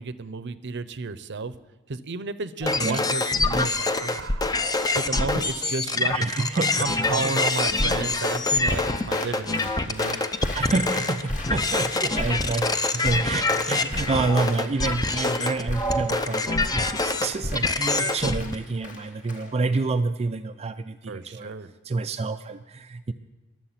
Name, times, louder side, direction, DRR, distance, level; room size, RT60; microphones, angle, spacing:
voice 1, 0.0-1.6 1.9-4.5 4.9-10.2 21.1-21.7, right 4 dB, 55° right, 14 dB, 0.7 m, -32 dB
sound 1, 2.6-18.6, left 3 dB, 15° left, 0.6 m, -25 dB
voice 2, 6.1-6.8 7.1-7.3 7.7-7.9 10.5-21.5 21.8-23.1, right 3 dB, 30° right, 8 dB, 0.4 m, -28 dB
Applause, 8.2-19.8, left 2 dB, 35° left, 2.2 m, -41 dB
22.5 x 7.7 x 5.8 m, 1.2 s
head